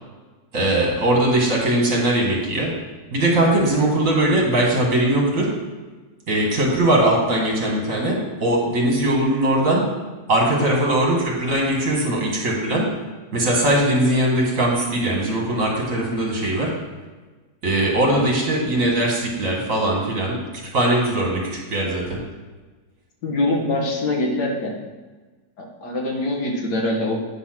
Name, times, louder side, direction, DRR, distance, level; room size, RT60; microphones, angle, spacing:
voice 1, 0.5-2.7 3.1-5.5 6.3-9.8 10.3-12.9 13.3-16.7 17.6-20.4 20.7-22.2, right 1 dB, 50° right, -2 dB, 2.0 m, -20 dB
voice 2, 23.2-24.8 25.6-27.2, left 1 dB, 70° left, 0 dB, 1.9 m, -24 dB
9.0 x 4.3 x 5.9 m, 1.3 s
omnidirectional pair, 1.8 m